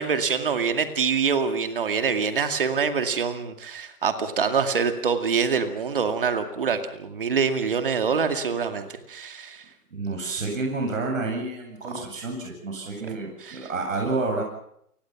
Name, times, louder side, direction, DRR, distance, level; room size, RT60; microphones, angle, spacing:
voice 1, 0.0-9.6 11.9-12.0 13.0-13.1 13.4-13.7, right 5 dB, 35° right, 7 dB, 2.3 m, -25 dB
voice 2, 9.9-14.4, right 3 dB, 55° right, 2 dB, 7.7 m, -29 dB
30.0 x 20.5 x 6.0 m, 0.72 s
hypercardioid pair, 175°, 45 cm